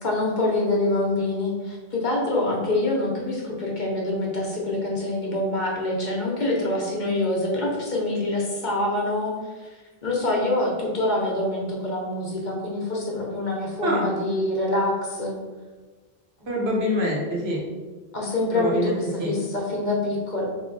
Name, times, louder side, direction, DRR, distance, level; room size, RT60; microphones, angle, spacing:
voice 1, 0.0-9.7 10.0-15.4 18.1-20.4, left 2 dB, 50° left, -2 dB, 0.9 m, -25 dB
voice 2, 16.4-17.6 18.5-19.3, equal, 75° right, -4 dB, 1.3 m, -25 dB
3.7 x 2.8 x 3.8 m, 1.3 s
omnidirectional pair, 1.1 m